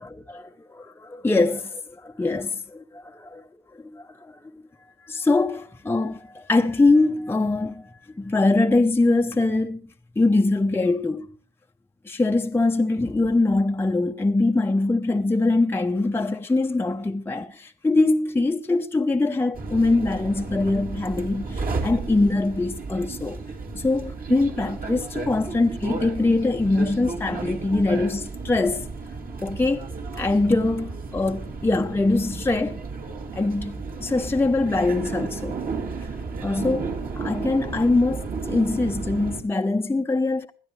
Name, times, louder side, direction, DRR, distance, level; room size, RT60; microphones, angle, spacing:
voice 1, 0.3-3.4 3.7-4.4 5.0-9.8 10.2-11.4 12.0-23.4 23.8-28.9 29.4-29.9 30.1-32.8 33.3-35.6 36.4-40.5, left 2 dB, 10° left, 0.7 m, -23 dB
sound 1, 19.5-39.4, right 4 dB, 45° right, 2.5 m, -33 dB
20.5 x 12.0 x 3.2 m
cardioid pair, 90°, 20 cm